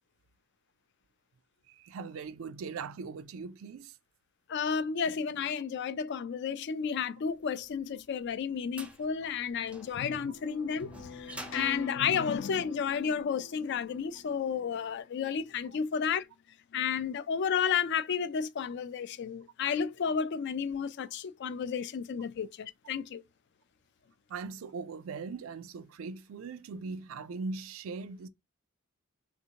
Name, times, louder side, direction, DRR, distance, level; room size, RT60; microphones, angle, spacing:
voice 1, 1.7-4.0 24.3-28.3, right 4 dB, 85° right, 0.4 m, -40 dB
voice 2, 4.5-16.3 16.7-23.2, left 7 dB, 60° left, 0.4 m, -32 dB
sound 1, 7.7-13.0, right 1 dB, 5° right, 0.5 m, -49 dB
sound 2, 9.2-15.0, left 3 dB, 75° left, 0.7 m, -46 dB
3.4 x 2.7 x 2.8 m
head